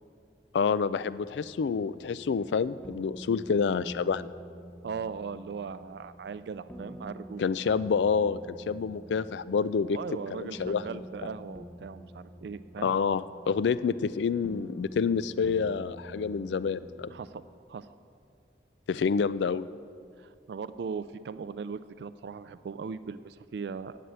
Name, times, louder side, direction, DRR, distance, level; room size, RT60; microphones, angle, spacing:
voice 1, 0.5-4.3 7.4-10.0 10.3-10.8 12.8-17.1 18.9-19.7, left 5 dB, 75° left, 16 dB, 0.4 m, -28 dB
sound 1, 0.9-17.3, equal, 5° left, 0.8 m, -47 dB
voice 2, 4.8-7.5 9.8-12.9 17.1-17.4 17.7-17.9 20.2-24.0, right 5 dB, 65° right, 13 dB, 0.3 m, -39 dB
11.0 x 7.8 x 8.0 m, 2.3 s
head